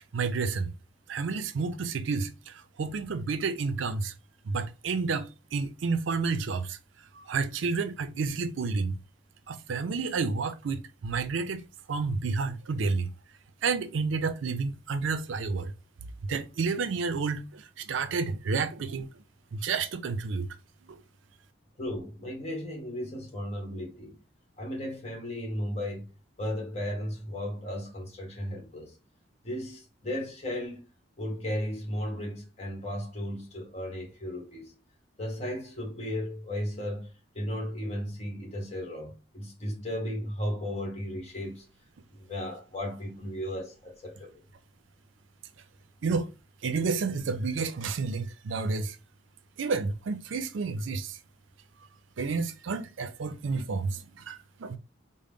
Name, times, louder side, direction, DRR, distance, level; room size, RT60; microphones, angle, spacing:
voice 1, 0.1-0.7 1.1-4.1 4.5-6.8 7.1-8.9 9.5-11.6 11.9-13.1 13.6-15.7 16.3-19.1 19.5-20.5 20.9-21.0 46.0-46.3 46.6-49.0 49.6-51.2 52.2-54.8, right 4 dB, 80° right, 0.4 m, -30 dB
voice 2, 21.8-24.2 24.6-26.1 26.4-28.9 29.4-30.8 31.2-34.7 35.2-37.1 37.3-41.7 42.1-44.3, left 1 dB, 35° left, 1.1 m, -35 dB
3.8 x 2.0 x 3.5 m
head